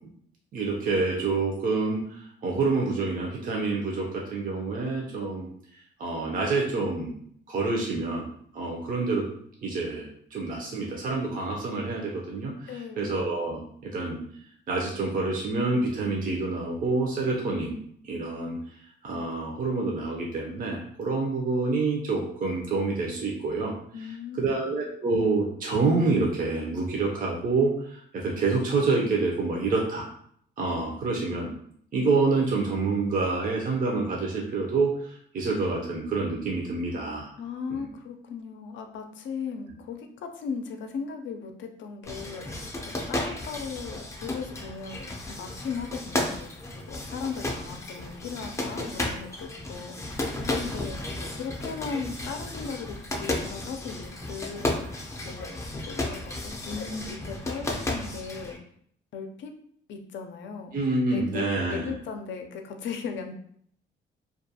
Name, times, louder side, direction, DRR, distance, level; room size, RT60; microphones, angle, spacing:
voice 1, 0.5-5.5 6.0-7.2 7.5-9.2 9.6-14.2 14.7-17.8 18.0-18.6 19.0-23.7 24.4-30.1 30.6-31.5 31.9-37.3 37.7-37.9 60.7-61.9, right 3 dB, 45° right, -1 dB, 0.5 m, -27 dB
voice 2, 12.7-13.1 23.9-24.6 37.4-42.6 43.1-46.5 46.9-50.2 50.5-51.0 51.4-55.0 55.2-58.6 59.1-59.5 59.9-60.8 61.1-63.3, left 5 dB, 70° left, 5 dB, 0.5 m, -37 dB
sound 1, 42.0-58.6, left 1 dB, 15° left, 0.4 m, -33 dB
2.4 x 2.2 x 2.7 m, 0.64 s
cardioid pair, 90°, 20 cm